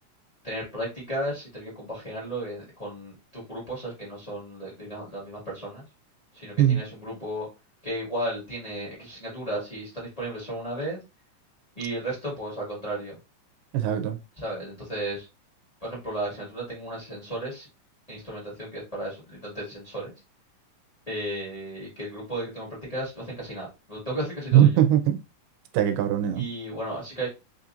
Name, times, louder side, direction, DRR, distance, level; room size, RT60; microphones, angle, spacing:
voice 1, 0.4-5.8 6.3-7.5 7.8-11.0 11.7-13.2 14.4-15.3 15.8-17.7 18.1-20.1 21.1-24.8 26.3-27.3, right 1 dB, 25° left, 0.9 m, -34 dB
voice 2, 13.7-14.2 24.5-25.2 25.7-26.5, right 11 dB, 85° right, 2.2 m, -20 dB
5.0 x 2.8 x 2.5 m
omnidirectional pair, 3.7 m